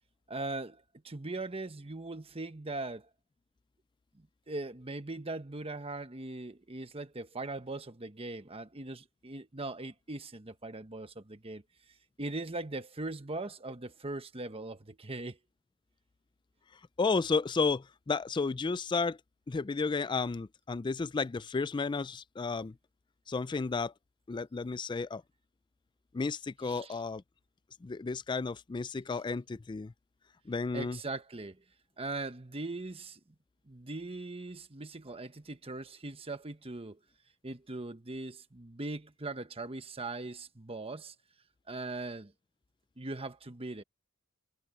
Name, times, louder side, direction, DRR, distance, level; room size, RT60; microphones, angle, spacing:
voice 1, 0.3-3.1 4.2-11.6 12.2-15.4 26.7-27.0 30.7-31.6 32.0-33.2 33.7-37.0 37.4-41.1 41.7-42.3 43.0-43.8, right 2 dB, 25° right, 1.2 m, -40 dB
voice 2, 17.0-19.2 19.5-22.7 23.3-23.9 24.3-25.2 26.1-27.2 27.8-29.9 30.5-31.0, left 4 dB, 20° left, 0.3 m, -32 dB
head